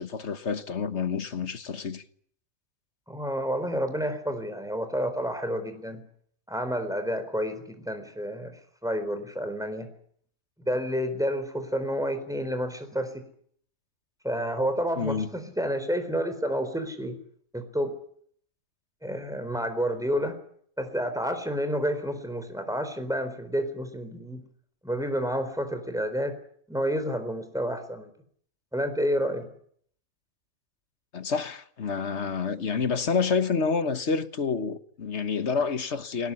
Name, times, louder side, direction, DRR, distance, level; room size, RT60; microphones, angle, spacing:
voice 1, 0.0-2.0 15.0-15.3 31.1-36.3, left 5 dB, 55° left, 1.5 m, -28 dB
voice 2, 3.1-6.0 6.5-8.5 8.8-9.9 10.7-13.2 14.2-17.2 17.5-17.9 19.0-20.4 20.8-24.4 24.8-26.3 26.7-28.1 28.7-29.5, equal, ahead, 4.0 m, -29 dB
21.0 x 18.0 x 9.8 m
omnidirectional pair, 1.4 m